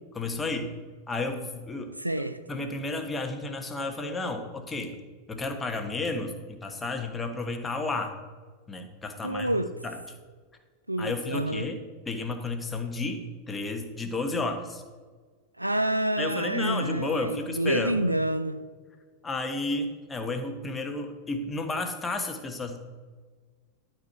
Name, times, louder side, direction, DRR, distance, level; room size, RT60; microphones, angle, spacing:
voice 1, 0.1-0.7 1.1-1.9 2.5-5.0 5.3-8.1 8.7-9.5 9.8-10.0 11.0-11.8 12.1-14.8 16.2-18.0 19.2-22.8, left 3 dB, 15° left, 1.1 m, -32 dB
voice 2, 2.0-2.4 9.2-9.7 10.9-11.7 15.6-18.6, right 1 dB, 85° right, 0.4 m, -28 dB
12.5 x 4.5 x 4.6 m
figure-of-eight pair, 90°, 0 cm